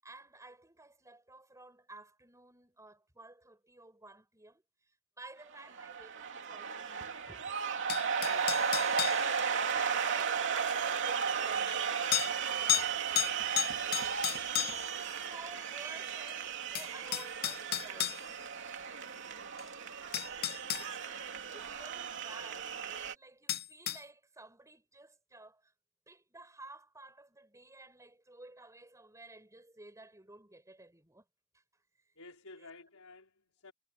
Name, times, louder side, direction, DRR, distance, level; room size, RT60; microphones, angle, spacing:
voice 1, 0.0-7.5 9.2-11.9 14.3-18.3 19.8-25.7 26.1-31.2 31.5-31.6 32.0-32.1 32.6-32.7, right 2 dB, 15° right, 7.7 m, -54 dB
sound 1, 5.5-23.1, right 6 dB, 60° right, 2.9 m, -35 dB
sound 2, 7.9-9.2 10.7-10.8 12.1-12.3 12.7-12.9 13.1-14.9 16.3-16.4 16.7-18.2 19.6-19.7 20.1-20.9 23.5-24.0, left 12 dB, 45° left, 1.1 m, -32 dB
voice 2, 8.3-8.7 12.6-13.1 19.1-19.6 32.2-33.7, left 3 dB, 80° left, 5.3 m, -53 dB
head